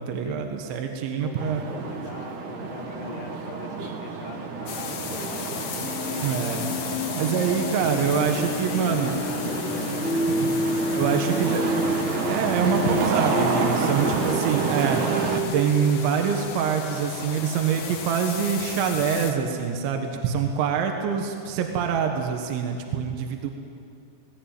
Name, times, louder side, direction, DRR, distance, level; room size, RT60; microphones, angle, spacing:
voice 1, 0.0-1.6 6.2-6.7 7.2-9.2 10.4-10.6 11.0-11.7 12.3-15.0 15.5-23.5, right 7 dB, 75° right, 4 dB, 3.6 m, -25 dB
voice 2, 1.2-6.8 7.7-11.2 11.5-11.8 13.9-15.2, left 5 dB, 60° left, 2 dB, 2.9 m, -41 dB
sound 1, 1.3-15.4, right 5 dB, 60° right, 2.3 m, -29 dB
sound 2, 4.7-19.3, left 6 dB, 90° left, 1.5 m, -36 dB
sound 3, 5.8-16.2, left 1 dB, 20° left, 2.5 m, -30 dB
19.0 x 17.5 x 9.0 m, 2.5 s
omnidirectional pair, 5.4 m